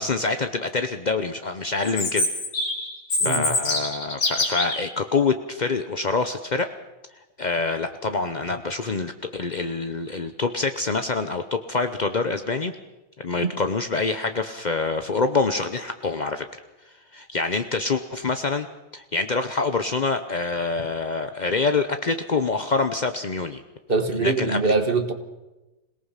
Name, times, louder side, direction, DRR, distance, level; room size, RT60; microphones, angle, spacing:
voice 1, 0.0-2.3 3.2-6.7 7.4-12.7 13.2-16.5 17.1-18.7 18.9-23.6 24.2-24.7, left 4 dB, 65° left, 8 dB, 0.4 m, -26 dB
Chirp tweet, 1.8-4.8, left 2 dB, 85° left, 4.1 m, -25 dB
voice 2, 3.2-3.5 13.4-13.5 23.9-25.1, right 4 dB, 30° right, 9 dB, 1.4 m, -23 dB
26.5 x 18.0 x 5.7 m, 1.1 s
omnidirectional pair, 2.1 m